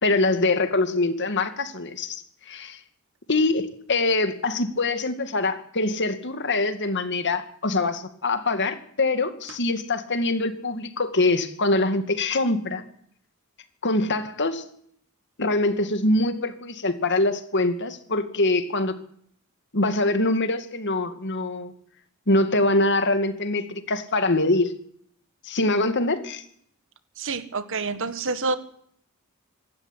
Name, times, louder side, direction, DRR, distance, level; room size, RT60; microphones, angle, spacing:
voice 1, 0.0-2.8 3.3-12.8 13.8-14.6 15.4-19.0 19.7-21.7 22.3-24.7 25.4-26.4, left 2 dB, 55° left, 9 dB, 2.3 m, -24 dB
voice 2, 27.2-28.6, right 3 dB, 60° right, 12 dB, 1.7 m, -27 dB
25.0 x 13.0 x 9.9 m, 0.65 s
head